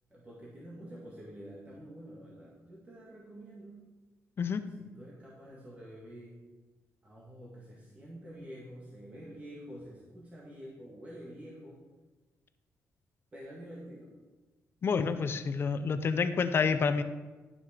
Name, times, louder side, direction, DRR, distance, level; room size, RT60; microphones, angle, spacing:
voice 1, 0.1-3.9 4.8-6.5 7.0-11.8 13.3-14.2, equal, 30° right, -5 dB, 2.0 m, -48 dB
voice 2, 14.8-17.0, left 5 dB, 50° left, 11 dB, 0.7 m, -28 dB
12.0 x 6.2 x 5.0 m, 1.2 s
cardioid pair, 110°, 5 cm